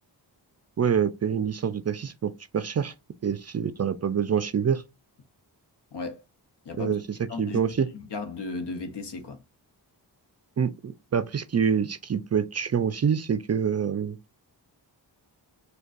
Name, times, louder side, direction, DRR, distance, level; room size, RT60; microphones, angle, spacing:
voice 1, 0.8-2.9 3.2-4.8 6.8-7.0 7.4-7.9 10.6-14.2, right 7 dB, 40° right, 0.4 m, -26 dB
voice 2, 5.9-6.2 6.6-7.0 7.3-7.6 7.9-9.4, left 4 dB, 65° left, 0.8 m, -35 dB
6.3 x 2.3 x 2.4 m
cardioid pair, 45°, 44 cm